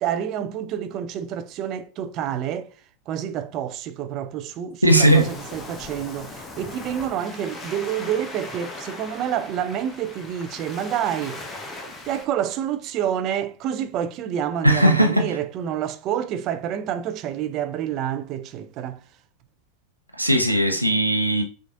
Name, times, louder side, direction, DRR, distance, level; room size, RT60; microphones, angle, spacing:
voice 1, 0.0-2.7 3.1-11.5 12.0-19.0, right 9 dB, 35° right, 0.4 m, -28 dB
voice 2, 4.8-5.3 14.6-15.3 20.2-21.4, right 1 dB, 90° right, 0.7 m, -18 dB
Waves surf, 4.9-12.3, left 2 dB, 20° left, 0.7 m, -38 dB
5.9 x 2.5 x 2.5 m
figure-of-eight pair, 90°, 0 cm